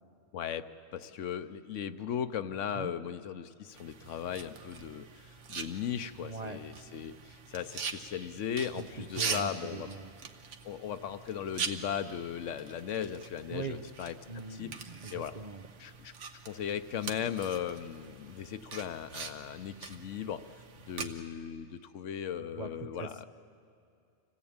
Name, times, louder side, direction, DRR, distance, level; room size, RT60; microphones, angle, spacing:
voice 1, 0.3-9.9 10.6-14.1 14.5-14.8 15.1-15.3 15.8-16.1 16.5-20.5 20.8-23.2, left 8 dB, 90° left, 12 dB, 1.1 m, -37 dB
sound 1, 3.7-21.0, right 5 dB, 80° right, 1.4 m, -43 dB
voice 2, 6.2-6.6 8.8-8.9 9.2-10.1 13.5-13.8 14.3-15.7 20.0-20.1 22.4-23.2, right 4 dB, 40° right, 8 dB, 0.8 m, -41 dB
26.0 x 16.5 x 8.7 m, 2.5 s
omnidirectional pair, 1.2 m